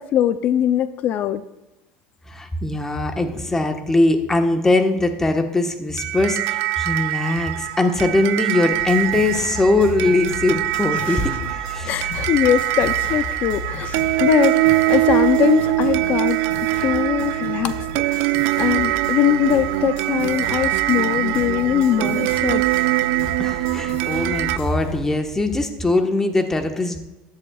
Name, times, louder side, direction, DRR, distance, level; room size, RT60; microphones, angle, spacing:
voice 1, 0.0-1.4 10.9-11.2 11.9-16.4 16.8-17.8 18.1-22.6, left 10 dB, 55° left, 12 dB, 0.5 m, -21 dB
voice 2, 2.3-12.1 23.4-27.0, left 2 dB, 15° left, 5 dB, 1.3 m, -21 dB
sound 1, 6.0-24.6, right 18 dB, 80° right, 0.4 m, -23 dB
sound 2, 8.7-25.0, left 1 dB, 75° left, 3.4 m, -34 dB
15.0 x 10.5 x 2.4 m, 1.0 s
cardioid pair, 125°, 3 cm